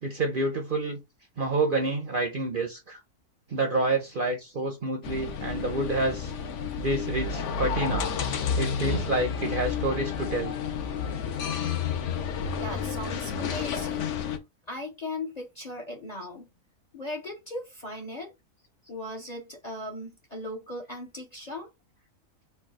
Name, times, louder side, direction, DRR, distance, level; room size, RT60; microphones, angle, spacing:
voice 1, 0.0-1.0 1.4-3.0 3.5-6.3 6.8-8.1 8.6-10.5, right 2 dB, 50° right, 0.7 m, -28 dB
sound 1, 5.0-14.4, left 6 dB, 60° left, 0.9 m, -30 dB
voice 2, 12.6-14.1 14.7-16.5 16.9-18.3 18.9-21.7, left 2 dB, 35° left, 0.7 m, -38 dB
4.5 x 2.3 x 4.6 m
omnidirectional pair, 1.6 m